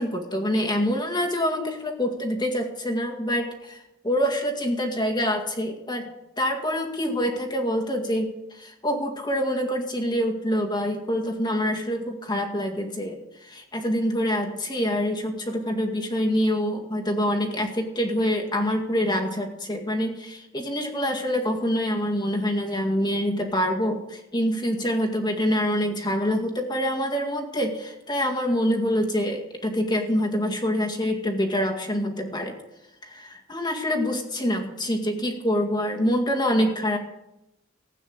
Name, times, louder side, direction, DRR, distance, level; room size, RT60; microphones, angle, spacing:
voice 1, 0.0-6.1 6.4-32.6 33.0-37.0, equal, 20° left, 2 dB, 2.0 m, -26 dB
16.0 x 9.1 x 6.6 m, 0.90 s
head